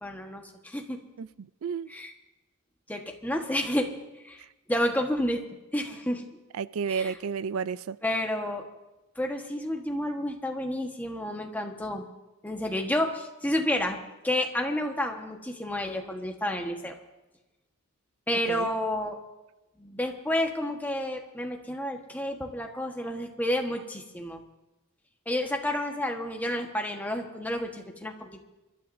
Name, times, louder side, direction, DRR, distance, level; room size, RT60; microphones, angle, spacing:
voice 1, 0.0-1.0 1.9-2.1 2.9-3.9 4.2-4.4 4.7-5.4 5.7-6.2 6.9-7.1 8.0-8.6 9.2-12.0 12.4-14.0 14.2-16.9 18.3-19.2 19.8-24.4 25.3-28.4, left 1 dB, 10° left, 2 dB, 1.3 m, -30 dB
voice 2, 1.2-1.9 6.5-8.0 18.5-18.7, right 6 dB, 85° right, 17 dB, 0.4 m, -32 dB
28.5 x 12.5 x 2.7 m, 1.0 s
head